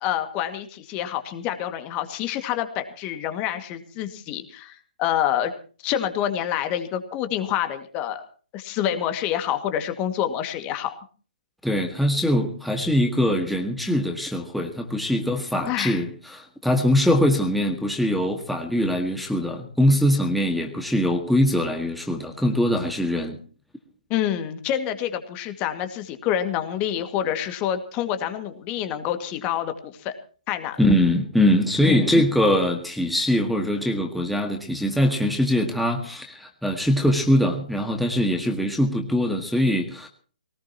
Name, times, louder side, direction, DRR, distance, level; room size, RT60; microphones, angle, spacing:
voice 1, 0.0-5.5 5.8-8.2 8.5-11.0 15.7-16.0 24.1-30.1 30.5-30.8 31.8-32.2, left 10 dB, 25° left, 8 dB, 2.1 m, -27 dB
voice 2, 11.6-23.4 30.8-40.1, left 1 dB, ahead, 2 dB, 1.8 m, -22 dB
22.0 x 19.0 x 3.0 m, 0.40 s
figure-of-eight pair, 130°, 5 cm